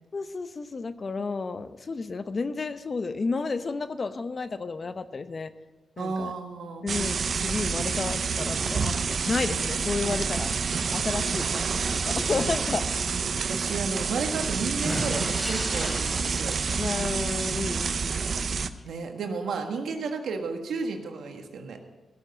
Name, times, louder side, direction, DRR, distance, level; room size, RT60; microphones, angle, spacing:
voice 1, 0.1-5.5 6.0-6.3 6.8-9.0 9.3-10.5 10.9-12.8 16.8-18.6, left 4 dB, 45° left, 11 dB, 0.8 m, -32 dB
voice 2, 6.0-6.9 13.3-16.6 18.8-21.8, right 4 dB, 80° right, 4 dB, 1.6 m, -33 dB
sound 1, 6.9-18.7, right 5 dB, 60° right, 0.7 m, -28 dB
sound 2, 8.4-17.5, equal, 10° left, 3.2 m, -39 dB
17.0 x 7.3 x 6.7 m, 1.2 s
cardioid pair, 60°, 0 cm